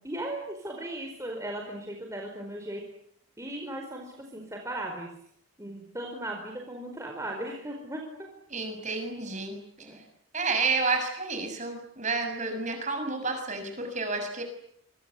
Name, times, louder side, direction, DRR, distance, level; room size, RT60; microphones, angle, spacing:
voice 1, 0.0-2.8 3.4-5.1 5.6-8.3 9.8-10.0, right 1 dB, 15° right, 1 dB, 4.6 m, -37 dB
voice 2, 8.5-9.6 10.3-14.4, right 3 dB, 35° right, 6 dB, 6.7 m, -30 dB
27.0 x 25.0 x 8.4 m, 0.70 s
head